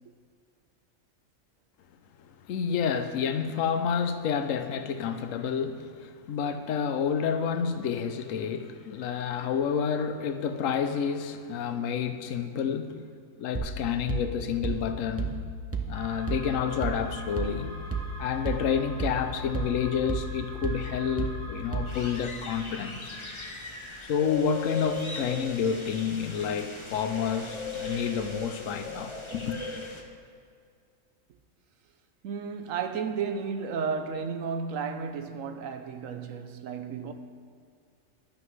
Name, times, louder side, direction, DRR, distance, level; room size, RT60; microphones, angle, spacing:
voice 1, 2.5-13.0 13.4-15.4 15.9-17.7 18.2-23.1 24.1-29.6, left 7 dB, 75° left, 1.0 m, -29 dB
sound 1, 13.5-22.2, right 3 dB, 20° right, 0.4 m, -34 dB
sound 2, 15.9-23.6, right 1 dB, 5° left, 1.6 m, -45 dB
sound 3, 21.9-30.0, left 3 dB, 25° left, 0.9 m, -38 dB
voice 2, 32.2-37.1, right 6 dB, 75° right, 1.1 m, -33 dB
15.0 x 11.5 x 3.2 m
omnidirectional pair, 1.4 m